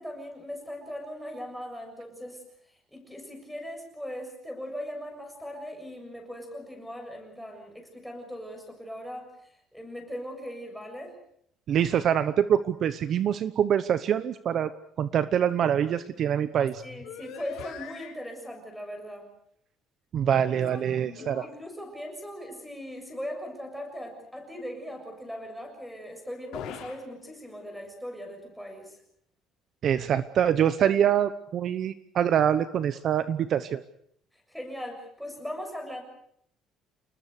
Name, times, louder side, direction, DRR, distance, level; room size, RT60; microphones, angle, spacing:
voice 1, 0.0-2.4 2.9-11.2 16.8-19.3 20.3-20.9 21.2-29.0 30.8-31.0 34.3-36.0, equal, ahead, 2 dB, 7.0 m, -39 dB
voice 2, 11.7-14.7 15.0-16.8 20.1-21.4 29.8-33.8, right 9 dB, 45° right, 13 dB, 0.9 m, -25 dB
sound 1, 16.2-16.4 16.7-18.3 20.1-21.5 26.5-27.1 27.5-27.9, left 8 dB, 70° left, 5.0 m, -43 dB
29.0 x 20.5 x 6.6 m, 0.70 s
cardioid pair, 150°, 0 cm